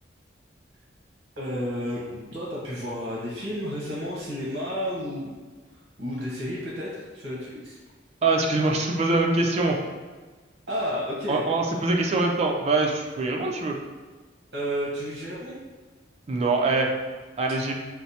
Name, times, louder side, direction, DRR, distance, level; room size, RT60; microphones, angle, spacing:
voice 1, 1.4-5.4 5.7-7.8 10.7-11.4 14.5-15.6, equal, 60° right, -5 dB, 0.8 m, -31 dB
voice 2, 8.2-9.8 11.3-13.8 16.3-16.9 17.4-17.7, right 3 dB, 35° right, 0 dB, 0.4 m, -23 dB
4.5 x 2.0 x 2.7 m, 1.4 s
head